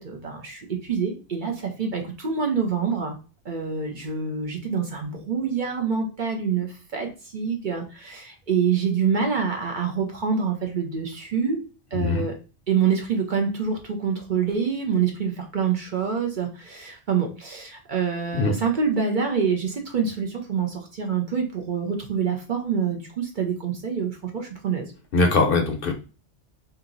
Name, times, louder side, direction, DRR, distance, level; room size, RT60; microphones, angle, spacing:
voice 1, 0.0-3.1 3.4-7.1 7.3-11.6 11.9-12.3 12.7-24.9, right 6 dB, 50° right, 2 dB, 0.7 m, -26 dB
voice 2, 11.9-12.3 18.3-18.5 25.1-25.9, left 3 dB, 60° left, 4 dB, 0.7 m, -21 dB
2.8 x 2.8 x 3.7 m, 0.34 s
omnidirectional pair, 1.2 m